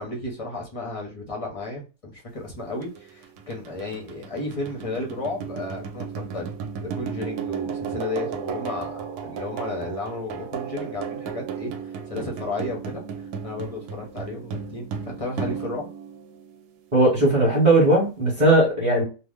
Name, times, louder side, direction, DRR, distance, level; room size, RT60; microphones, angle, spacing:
voice 1, 0.0-15.9, left 2 dB, 40° left, -1 dB, 0.4 m, -33 dB
sound 1, 2.8-17.0, right 7 dB, 85° right, 1.1 m, -35 dB
voice 2, 16.9-19.0, right 1 dB, 35° right, -5 dB, 1.0 m, -18 dB
2.8 x 2.0 x 3.4 m, 0.33 s
omnidirectional pair, 1.7 m